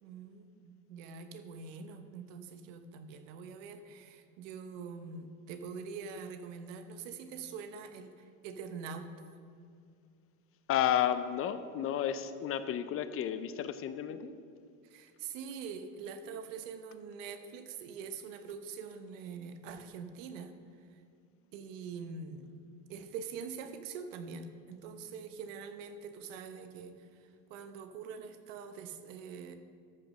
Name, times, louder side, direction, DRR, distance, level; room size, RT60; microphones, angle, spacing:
voice 1, 0.0-9.1 14.8-20.5 20.9-21.0 21.5-22.5 22.9-29.6, right 6 dB, 85° right, 9 dB, 1.0 m, -44 dB
voice 2, 10.7-14.3, left 10 dB, 40° left, 12 dB, 0.5 m, -32 dB
13.0 x 5.1 x 6.3 m, 2.3 s
supercardioid pair, 125°, 37 cm